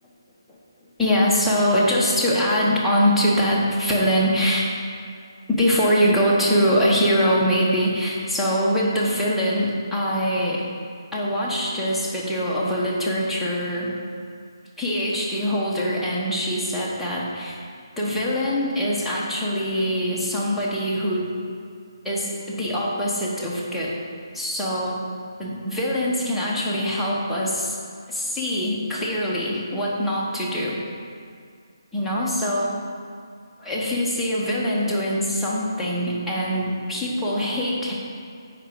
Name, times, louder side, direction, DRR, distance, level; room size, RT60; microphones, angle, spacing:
voice 1, 1.0-4.7 5.5-10.6 11.1-13.9 14.8-17.6 18.0-21.3 22.0-23.9 24.3-25.0 25.4-27.8 28.1-30.8 31.9-32.7 33.6-37.9, equal, ahead, -8 dB, 1.1 m, -23 dB
7.8 x 5.0 x 4.9 m, 2.2 s
figure-of-eight pair, 150°, 2 cm